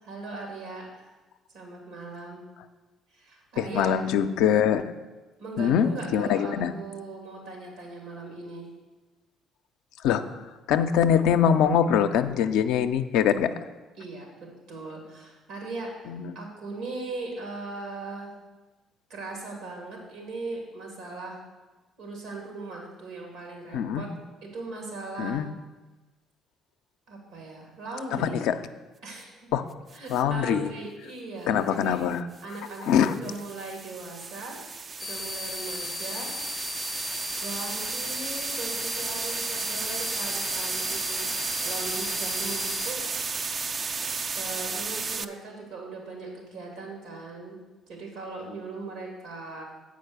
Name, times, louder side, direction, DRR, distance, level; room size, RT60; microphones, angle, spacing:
voice 1, 0.0-1.1 1.5-2.4 3.1-3.9 5.4-8.7 14.0-14.3 14.7-18.3 19.1-21.4 22.0-24.1 24.4-25.4 27.1-28.5 29.0-29.3 29.9-32.0 32.4-34.6 35.0-36.3 37.4-41.3 41.6-43.0 44.3-47.6 47.9-49.6, right 3 dB, 80° right, -1 dB, 2.7 m, -39 dB
voice 2, 3.6-4.8 5.6-6.7 10.0-10.2 10.7-13.5 16.1-16.3 23.7-24.0 25.2-25.5 28.2-28.5 29.5-29.6 30.1-30.7 31.5-32.3 32.9-33.1, left 8 dB, 80° left, 8 dB, 0.4 m, -23 dB
sound 1, 29.9-30.2 32.4-45.2, right 4 dB, 40° right, 0.4 m, -33 dB
sound 2, 35.0-42.9, left 3 dB, 30° left, 0.6 m, -36 dB
8.5 x 5.1 x 6.7 m, 1.2 s
supercardioid pair, 65°, 0 cm